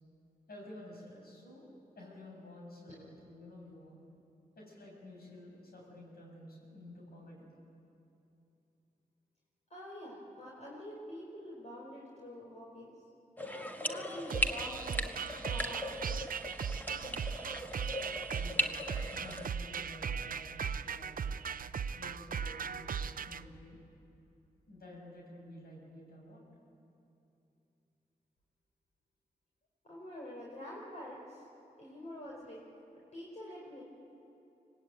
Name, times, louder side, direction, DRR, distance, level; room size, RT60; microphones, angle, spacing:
voice 1, 0.5-1.7 1.9-3.9 4.6-7.5 18.3-21.3 21.9-23.8 24.7-26.4, left 1 dB, 85° left, -2 dB, 7.2 m, -51 dB
voice 2, 9.7-12.9 13.4-15.1 15.4-16.3 29.8-31.5 31.8-32.6 33.1-33.8, left 1 dB, 45° left, -5 dB, 4.8 m, -46 dB
sound 1, 13.4-19.5, left 1 dB, 10° left, 1.6 m, -38 dB
sound 2, 14.3-23.4, right 6 dB, 65° right, 0.6 m, -38 dB
25.0 x 19.0 x 9.4 m, 2.8 s
cardioid pair, 70°, 16 cm